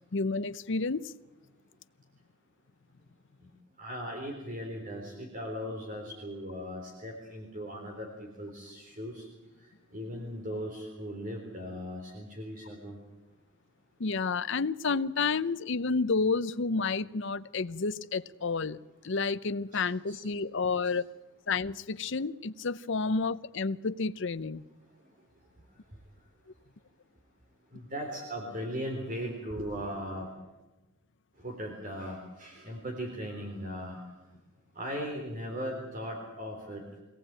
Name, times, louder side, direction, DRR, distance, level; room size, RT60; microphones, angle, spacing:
voice 1, 0.1-1.1 14.0-18.8 19.0-21.1 21.5-24.6, left 4 dB, 60° left, 15 dB, 0.7 m, -30 dB
voice 2, 3.8-9.3 9.9-13.0 19.7-20.2 27.7-30.3 31.4-34.0 34.8-36.8, equal, 40° right, 2 dB, 3.7 m, -38 dB
24.0 x 18.0 x 8.9 m, 1.1 s
head